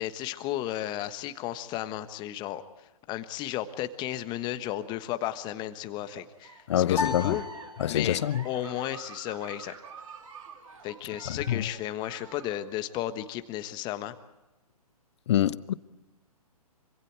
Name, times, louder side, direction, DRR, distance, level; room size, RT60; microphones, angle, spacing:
voice 1, 0.0-2.6 3.1-7.4 7.9-8.2 8.4-9.7 10.8-14.1, left 13 dB, 25° left, 1.4 m, -34 dB
Giggle, 6.0-12.7, right 5 dB, 60° right, 3.3 m, -48 dB
voice 2, 6.7-7.4 7.8-8.5 11.3-11.7 15.3-15.7, left 11 dB, 45° left, 0.9 m, -26 dB
sound 1, 6.9-8.4, left 5 dB, 75° left, 3.6 m, -34 dB
26.5 x 26.0 x 4.7 m
figure-of-eight pair, 125°, 19 cm